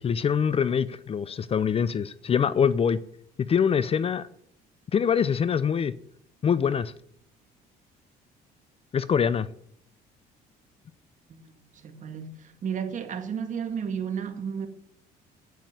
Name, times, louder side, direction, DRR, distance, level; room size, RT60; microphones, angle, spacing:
voice 1, 0.0-3.0 3.5-4.2 4.9-5.9 6.4-6.9 8.9-9.5, left 7 dB, 35° left, 0.6 m, -24 dB
voice 2, 11.7-14.7, right 7 dB, 50° right, 2.0 m, -33 dB
9.4 x 9.3 x 7.8 m
cardioid pair, 110°, 17 cm